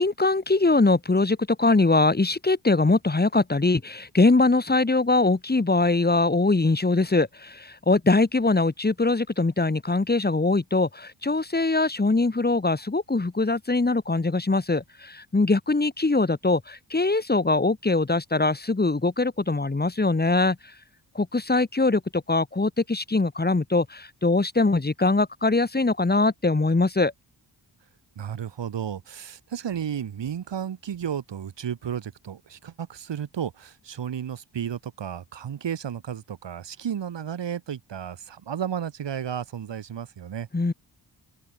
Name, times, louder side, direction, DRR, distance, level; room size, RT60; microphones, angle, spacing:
voice 1, 0.0-20.6 21.2-27.1 40.5-40.7, left 3 dB, 20° left, 2.1 m, -22 dB
voice 2, 28.2-40.5, right 8 dB, 75° right, 2.0 m, -33 dB
wide cardioid pair, 95°, 44 cm